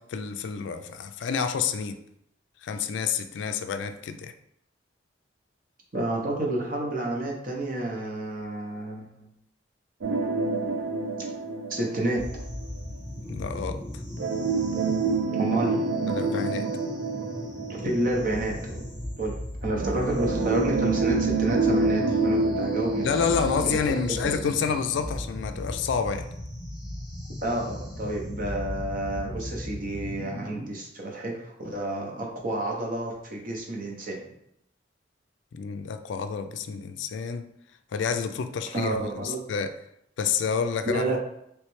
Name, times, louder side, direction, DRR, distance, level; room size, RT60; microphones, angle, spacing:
voice 1, 0.1-2.0 2.6-4.3 13.3-13.8 16.1-16.7 23.0-26.3 35.5-37.5 37.9-39.7 40.2-41.0, left 6 dB, 70° left, 8 dB, 0.3 m, -28 dB
voice 2, 5.9-9.3 11.7-12.3 15.3-15.8 17.8-18.8 19.2-23.2 23.6-23.8 24.2-24.4 27.4-34.2 38.7-39.4 40.9-41.2, right 1 dB, 45° right, -1 dB, 0.8 m, -30 dB
sound 1, 10.0-12.7 14.2-18.5 19.8-24.7 25.0-25.1 25.7-25.8, right 3 dB, 80° right, 0.4 m, -27 dB
sound 2, 12.2-30.7, left 1 dB, 5° right, 0.6 m, -37 dB
3.2 x 3.1 x 3.1 m, 0.76 s
head